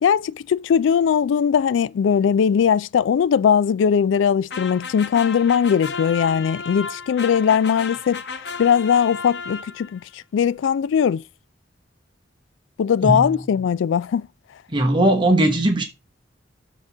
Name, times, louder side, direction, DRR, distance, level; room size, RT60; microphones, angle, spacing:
voice 1, 0.0-8.2 8.6-11.2 12.8-14.3, left 7 dB, 85° left, 0.3 m, -19 dB
sound 1, 4.5-10.0, left 5 dB, 60° left, 0.8 m, -33 dB
voice 2, 14.7-15.8, right 1 dB, 25° right, 1.0 m, -18 dB
6.6 x 4.1 x 5.8 m
head